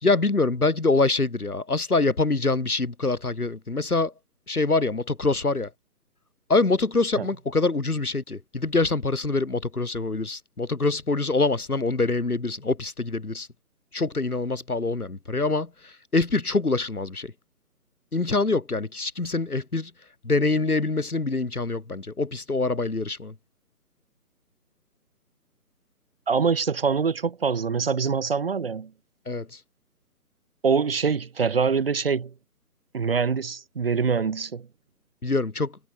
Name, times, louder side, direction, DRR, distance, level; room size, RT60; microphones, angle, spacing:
voice 1, 0.0-4.1 4.5-5.7 6.5-13.5 13.9-17.3 18.1-19.9 20.2-23.3 29.3-29.6 35.2-35.8, left 3 dB, 65° left, 5.2 m, -25 dB
voice 2, 26.3-28.9 30.6-32.3 32.9-34.7, right 5 dB, 35° right, 1.7 m, -24 dB
figure-of-eight pair, 150°, 47 cm